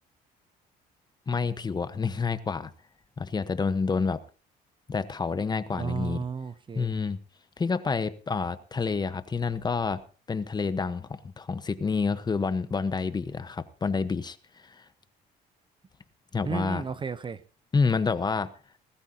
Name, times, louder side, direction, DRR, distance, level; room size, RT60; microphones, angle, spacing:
voice 1, 1.3-2.7 3.2-4.2 4.9-6.2 6.7-7.2 7.6-10.0 10.3-14.4 14.6-14.8 16.3-16.8 17.7-18.5, left 4 dB, 25° left, 1.1 m, -28 dB
voice 2, 5.7-6.9 16.4-17.4, right 6 dB, 30° right, 0.8 m, -33 dB
20.5 x 13.5 x 2.8 m
cardioid pair, 110°, 17 cm